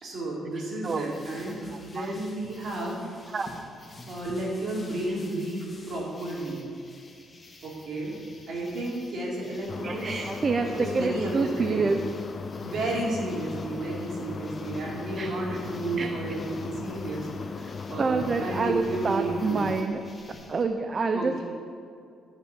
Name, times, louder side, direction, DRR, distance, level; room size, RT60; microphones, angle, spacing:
voice 1, 0.0-3.2 4.1-6.6 7.6-8.2 8.5-10.1 10.6-11.8 12.6-19.7 21.1-21.4, right 2 dB, 65° right, -3 dB, 2.9 m, -32 dB
sound 1, 0.8-20.6, left 2 dB, 25° left, 1.5 m, -50 dB
voice 2, 1.7-2.1 3.3-3.5 9.8-12.0 15.2-15.3 16.0-16.1 17.9-20.1 20.5-21.4, right 4 dB, 40° right, 7 dB, 0.6 m, -27 dB
sound 2, 9.7-19.8, left 5 dB, 40° left, 0.4 m, -37 dB
12.5 x 5.6 x 7.2 m, 2.4 s
cardioid pair, 90°, 0 cm